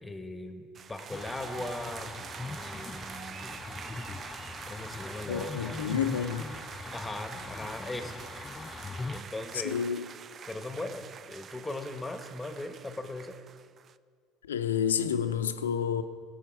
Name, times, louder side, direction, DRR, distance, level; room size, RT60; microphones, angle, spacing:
voice 1, 0.0-3.6 4.7-5.8 6.9-8.2 9.1-9.8 10.5-13.4, left 2 dB, 10° left, 1.3 m, -39 dB
sound 1, 0.7-14.0, right 7 dB, 40° right, 0.4 m, -45 dB
sound 2, 1.1-9.2, left 3 dB, 25° left, 0.6 m, -41 dB
voice 2, 5.3-6.5 9.6-10.1 14.5-16.0, left 8 dB, 90° left, 0.5 m, -29 dB
17.0 x 7.1 x 4.7 m
hypercardioid pair, 70°, 0 cm